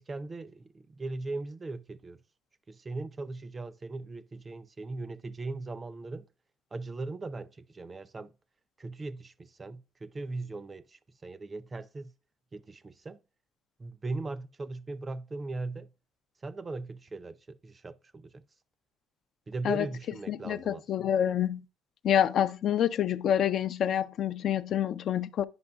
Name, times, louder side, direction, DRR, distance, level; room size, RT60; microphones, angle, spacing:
voice 1, 0.0-2.2 2.7-6.3 6.7-8.3 8.8-12.1 12.5-13.2 13.8-15.9 16.4-18.4 19.5-21.1, right 3 dB, 30° right, 0.4 m, -39 dB
voice 2, 20.3-21.6 22.0-25.5, left 10 dB, 60° left, 0.4 m, -27 dB
9.6 x 5.3 x 2.2 m
supercardioid pair, 75°, 0 cm